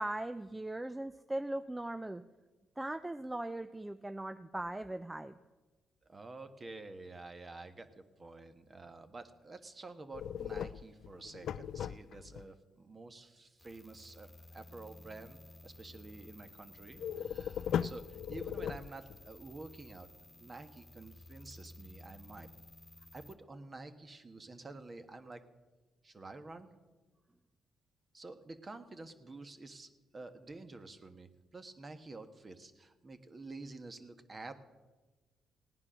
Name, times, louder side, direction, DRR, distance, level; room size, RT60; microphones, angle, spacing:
voice 1, 0.0-2.2 2.8-5.4, right 1 dB, 10° right, 10 dB, 0.4 m, -39 dB
voice 2, 6.1-20.1 20.4-22.5 23.1-25.4 26.0-26.7 28.1-34.5, right 3 dB, 30° right, 8 dB, 1.3 m, -49 dB
sound 1, 10.1-12.4 17.0-19.3, left 9 dB, 70° left, 0.4 m, -38 dB
sound 2, 13.6-23.3, left 2 dB, 20° left, 1.5 m, -55 dB
17.5 x 9.6 x 6.2 m, 1.2 s
cardioid pair, 90°, 0 cm